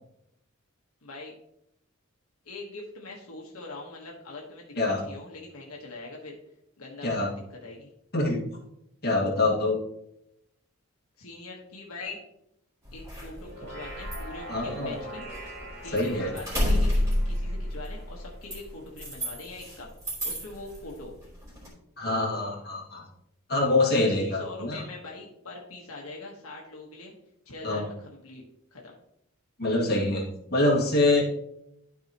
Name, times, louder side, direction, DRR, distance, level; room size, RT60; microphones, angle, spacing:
voice 1, 1.0-1.3 2.4-6.3 6.8-7.9 11.2-12.2 12.9-15.2 15.8-19.9 20.2-21.1 23.9-27.1 27.4-28.4 28.7-28.9, left 2 dB, 80° left, -2 dB, 1.4 m, -42 dB
voice 2, 9.0-9.8 14.5-15.0 15.9-16.3 22.0-23.1 23.5-24.8 27.6-27.9 29.6-30.2 30.5-31.2, left 2 dB, 50° left, -3 dB, 1.9 m, -25 dB
sound 1, 12.9-15.7 16.0-19.8 20.0-20.8 21.2-21.7, left 1 dB, 15° right, 3.3 m, -29 dB
sound 2, 13.4-18.9, right 1 dB, 50° right, 2.7 m, -44 dB
12.0 x 4.8 x 3.0 m, 0.78 s
head